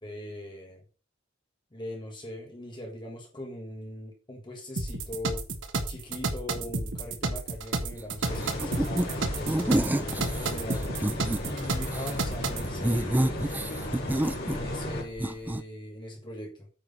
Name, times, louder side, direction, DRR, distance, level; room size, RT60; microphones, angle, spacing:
voice 1, 0.0-0.8 1.7-5.4 5.9-10.9 11.5-13.3 14.5-16.7, left 1 dB, 25° left, 0 dB, 1.6 m, -40 dB
sound 1, 4.8-12.7, right 3 dB, 65° right, 1.2 m, -31 dB
sound 2, 8.2-15.0, left 1 dB, 50° left, 3.1 m, -35 dB
sound 3, 8.4-9.1 9.5-11.4 11.8-12.1 12.6-14.9 15.2-15.6, right 1 dB, 10° right, 0.3 m, -28 dB
9.0 x 4.7 x 5.5 m, 0.36 s
head